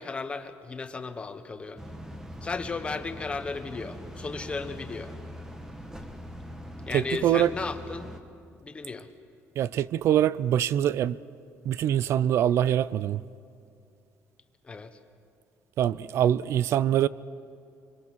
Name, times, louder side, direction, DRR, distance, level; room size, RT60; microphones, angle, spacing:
voice 1, 0.0-1.8 2.4-5.1 6.9-8.1 8.6-9.1 14.6-15.0, left 4 dB, 20° left, 1.2 m, -35 dB
sound 1, 1.8-8.2, equal, 10° right, 1.3 m, -42 dB
voice 2, 6.9-7.5 9.6-11.2 11.6-13.2 15.8-17.1, right 11 dB, 60° right, 0.5 m, -24 dB
24.0 x 24.0 x 6.2 m
cardioid pair, 145°, 5 cm